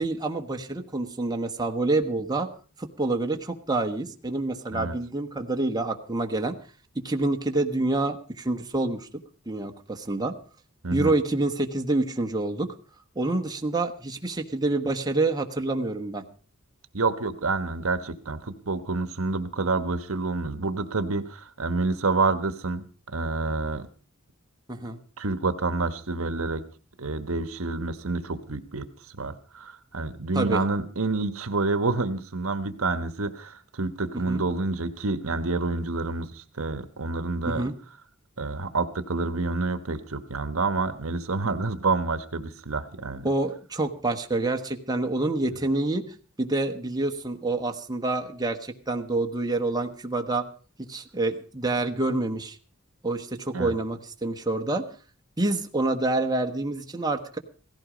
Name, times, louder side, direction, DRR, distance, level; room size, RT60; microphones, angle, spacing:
voice 1, 0.0-2.5 2.8-6.6 6.9-9.1 9.5-10.4 10.9-12.7 13.1-16.2 24.7-25.0 30.3-30.6 34.3-34.4 37.5-37.7 43.2-46.0 46.4-50.4 50.9-52.6 53.0-54.8 55.4-57.4, right 2 dB, 20° right, 4 dB, 1.2 m, -27 dB
voice 2, 10.8-11.2 16.9-22.9 23.1-23.9 25.2-26.6 27.0-28.9 29.2-37.6 38.4-43.3 53.5-53.7, right 3 dB, 70° right, 11 dB, 1.2 m, -28 dB
17.0 x 15.0 x 5.1 m, 0.38 s
head